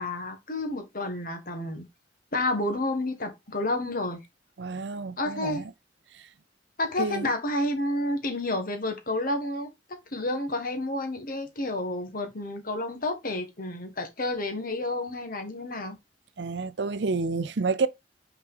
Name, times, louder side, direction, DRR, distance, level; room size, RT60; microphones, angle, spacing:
voice 1, 0.0-1.9 2.3-4.2 5.2-5.6 6.8-16.0, left 2 dB, 50° left, 1.6 m, -30 dB
voice 2, 4.6-5.6 7.0-7.3 16.4-17.9, right 4 dB, 70° right, 0.6 m, -29 dB
5.8 x 4.7 x 3.8 m
head